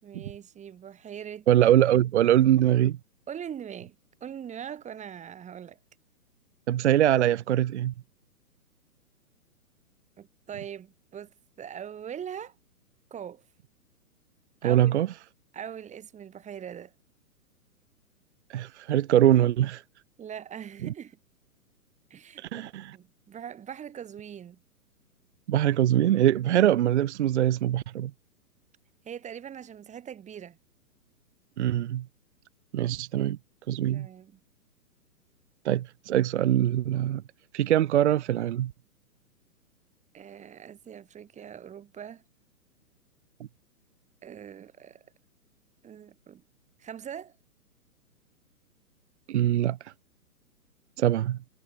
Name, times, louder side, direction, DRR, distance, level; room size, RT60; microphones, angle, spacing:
voice 1, 0.0-1.5 3.3-5.8 10.2-12.5 13.1-13.4 14.6-15.0 15.5-16.9 20.2-21.2 22.1-24.6 29.0-30.6 33.9-34.4 40.1-42.2 44.2-45.0 45.8-46.4 46.8-47.3, right 9 dB, 15° right, 6.3 m, -41 dB
voice 2, 1.5-3.0 6.7-7.9 14.6-15.1 18.5-19.8 22.4-22.9 25.5-28.1 31.6-32.0 32.7-33.4 33.7-34.1 35.6-37.2 37.5-38.7 49.3-49.8 51.0-51.4, right 12 dB, 45° right, 0.7 m, -23 dB
figure-of-eight pair, 125°, 46 cm